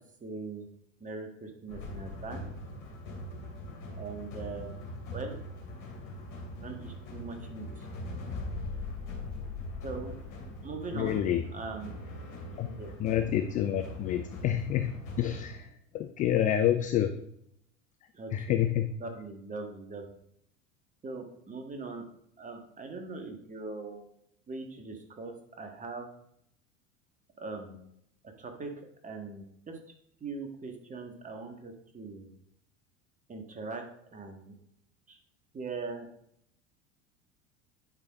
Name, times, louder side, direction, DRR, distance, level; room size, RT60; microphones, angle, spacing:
voice 1, 0.2-0.7 1.0-2.5 4.0-4.8 5.1-5.4 6.6-7.9 9.8-10.2 10.6-11.2 11.5-11.9 12.7-12.9 18.1-18.6 19.0-20.2 21.0-22.0 22.4-24.1 24.5-26.1 27.4-27.8 28.2-29.8 30.2-32.3 33.3-33.8 34.1-34.5 35.1-35.2 35.5-36.1, right 4 dB, 20° right, 4 dB, 1.5 m, -41 dB
sound 1, 1.7-15.6, left 2 dB, 50° left, 2.7 m, -41 dB
voice 2, 10.9-11.4 12.6-12.7 13.0-15.7 15.9-17.2 18.3-18.9, left 11 dB, 20° left, 9 dB, 0.3 m, -28 dB
9.7 x 5.6 x 3.6 m, 0.73 s
figure-of-eight pair, 75°, 39 cm